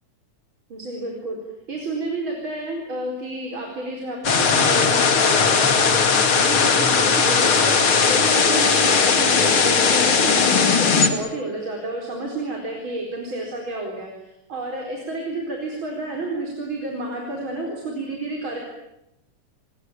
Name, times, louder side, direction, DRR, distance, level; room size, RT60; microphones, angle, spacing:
voice 1, 0.7-1.4 1.7-18.7, right 2 dB, 40° right, 0 dB, 5.1 m, -30 dB
sound 1, 4.2-11.1, left 5 dB, 45° left, 3.0 m, -18 dB
29.0 x 22.0 x 9.0 m, 0.87 s
omnidirectional pair, 3.4 m